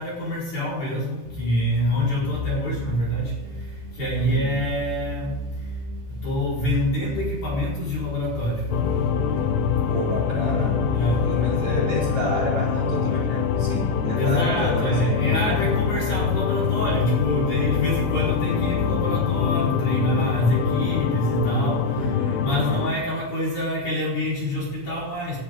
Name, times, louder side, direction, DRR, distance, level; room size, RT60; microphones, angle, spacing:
voice 1, 0.0-5.8 6.1-8.7 10.9-11.2 14.2-22.0 22.4-25.4, equal, 40° left, -6 dB, 5.7 m, -26 dB
sound 1, 1.3-19.5, left 1 dB, 70° right, 3.1 m, -34 dB
voice 2, 4.2-4.6 9.9-10.9 11.2-15.8 21.9-22.9, right 1 dB, 35° right, -5 dB, 5.0 m, -30 dB
sound 2, 8.7-22.9, left 8 dB, 80° left, 2.5 m, -24 dB
18.5 x 12.0 x 3.7 m, 1.1 s
omnidirectional pair, 5.8 m